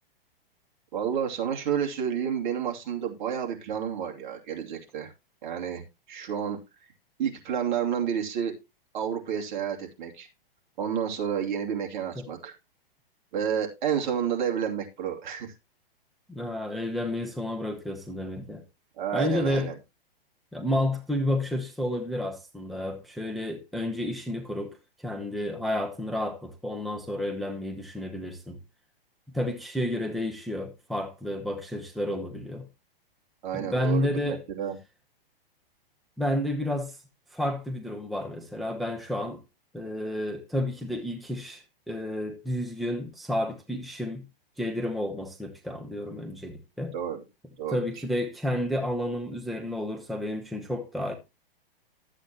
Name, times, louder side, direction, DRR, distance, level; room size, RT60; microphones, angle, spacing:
voice 1, 0.9-5.1 5.4-6.6 7.2-8.6 8.9-10.3 10.8-12.5 13.3-15.5 19.0-19.7 33.4-34.8 46.9-47.2 47.6-47.8, right 8 dB, 50° right, 2.8 m, -30 dB
voice 2, 16.3-18.6 19.1-19.7 20.5-28.6 29.3-32.7 33.5-34.4 36.2-37.0 37.3-39.4 39.7-44.3 44.6-46.9 47.7-51.1, left 1 dB, ahead, 0.9 m, -31 dB
13.0 x 8.1 x 2.9 m
hypercardioid pair, 130°, 30 cm